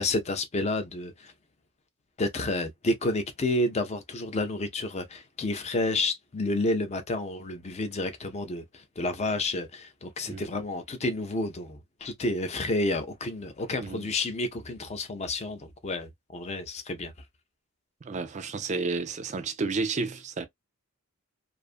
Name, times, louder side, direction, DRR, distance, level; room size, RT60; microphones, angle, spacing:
voice 1, 0.0-1.3 2.2-17.1, left 2 dB, 30° left, 0.4 m, -30 dB
voice 2, 13.8-14.1 18.0-20.5, right 4 dB, 30° right, 0.4 m, -31 dB
2.5 x 2.4 x 2.4 m
head